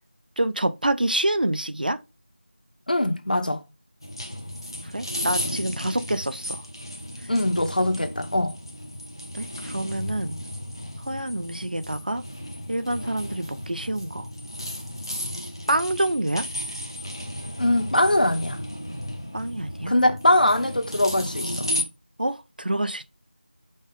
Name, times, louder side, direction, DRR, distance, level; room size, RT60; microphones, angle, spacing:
voice 1, 0.4-2.0 4.9-6.6 9.3-10.4 11.1-12.2 12.7-14.3 15.7-16.5 19.3-19.9 22.2-23.1, right 1 dB, 55° right, 0.6 m, -27 dB
voice 2, 2.9-3.6 7.3-8.6 17.6-18.6 19.9-21.7, left 1 dB, 50° left, 0.9 m, -22 dB
sound 1, 4.0-21.8, left 1 dB, 25° left, 0.7 m, -34 dB
5.4 x 3.8 x 5.0 m
figure-of-eight pair, 180°, 6 cm